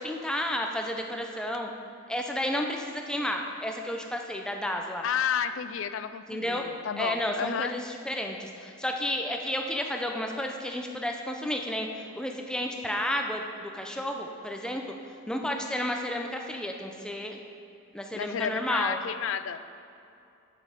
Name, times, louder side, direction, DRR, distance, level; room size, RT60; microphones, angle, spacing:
voice 1, 0.0-1.7 2.1-5.0 6.3-6.6 7.0-15.0 15.3-17.4 17.9-19.0, left 1 dB, 5° left, 2 dB, 0.6 m, -32 dB
voice 2, 5.0-7.7 18.1-19.6, left 8 dB, 65° left, 12 dB, 0.4 m, -31 dB
8.5 x 7.5 x 5.2 m, 2.6 s
head